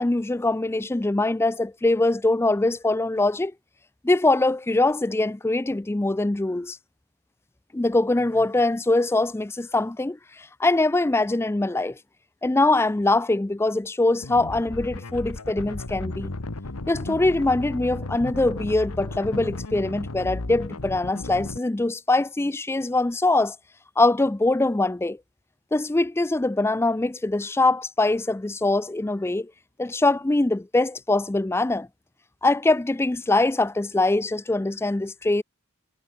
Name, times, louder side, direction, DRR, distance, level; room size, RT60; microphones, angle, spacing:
voice 1, 0.0-3.5 4.0-6.8 7.7-12.0 12.4-16.3 16.9-23.6 24.0-25.2 25.7-29.5 29.8-31.9 32.4-35.4, left 2 dB, 10° left, 0.4 m, -23 dB
sound 1, 14.2-21.6, left 2 dB, 80° left, 1.4 m, -34 dB
head